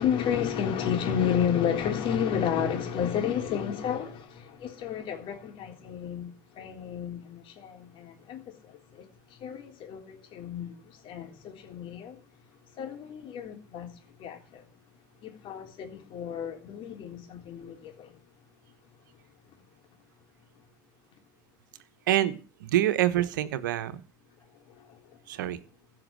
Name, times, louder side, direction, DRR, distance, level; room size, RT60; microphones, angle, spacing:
voice 1, 0.0-12.2 12.7-14.7 15.2-18.1 24.7-25.0, left 8 dB, 60° left, 3.7 m, -32 dB
voice 2, 22.1-24.0 25.3-25.6, right 13 dB, 85° right, 1.1 m, -26 dB
16.0 x 5.8 x 7.6 m
hypercardioid pair, 80°, 10 cm